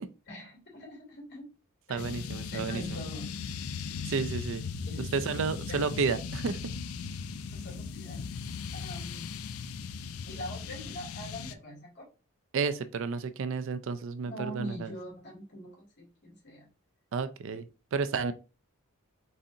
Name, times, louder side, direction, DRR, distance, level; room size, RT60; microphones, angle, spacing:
voice 1, 0.3-1.5 1.9-2.0 2.5-3.5 4.8-5.2 5.7-6.0 7.5-8.3 8.7-9.3 10.3-12.0 14.3-16.7, equal, 50° left, 2.4 m, -43 dB
voice 2, 1.9-3.0 4.1-4.6 5.1-6.6 12.5-14.9 17.1-18.3, right 5 dB, 60° right, 0.4 m, -31 dB
sound 1, 2.0-11.5, left 5 dB, 70° left, 0.4 m, -38 dB
4.1 x 3.7 x 2.6 m
head